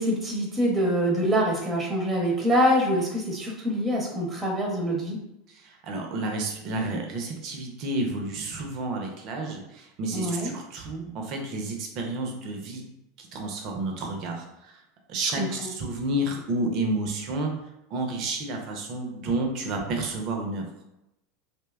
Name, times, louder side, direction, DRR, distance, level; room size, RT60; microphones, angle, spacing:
voice 1, 0.0-5.2 10.1-10.5 15.2-15.7, equal, 15° right, -2 dB, 0.7 m, -25 dB
voice 2, 5.6-12.8 13.2-14.4 15.1-17.5 17.9-20.7, right 2 dB, 50° right, 2 dB, 0.6 m, -30 dB
2.7 x 2.1 x 2.3 m, 0.87 s
hypercardioid pair, 85°, 0 cm